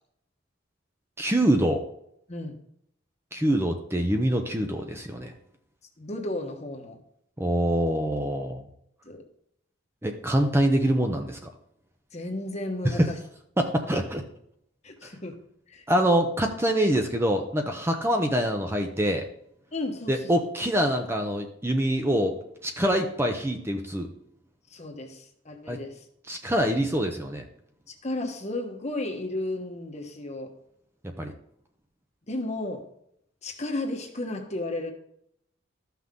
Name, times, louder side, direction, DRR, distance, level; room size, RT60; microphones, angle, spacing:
voice 1, 1.2-1.8 3.3-5.3 7.4-8.7 10.0-11.4 12.8-13.1 13.6-14.2 15.0-15.1 15.9-19.2 20.1-24.1 25.7-25.8 26.3-27.4 31.2-31.3, right 1 dB, 15° right, 4 dB, 0.7 m, -25 dB
voice 2, 6.0-7.0 9.0-9.2 12.1-13.2 14.8-15.4 15.7-15.8 19.7-20.3 24.7-26.0 28.0-30.5 32.3-32.9 33.4-34.9, left 2 dB, 35° left, 4 dB, 1.2 m, -33 dB
13.5 x 5.8 x 3.7 m, 0.73 s
head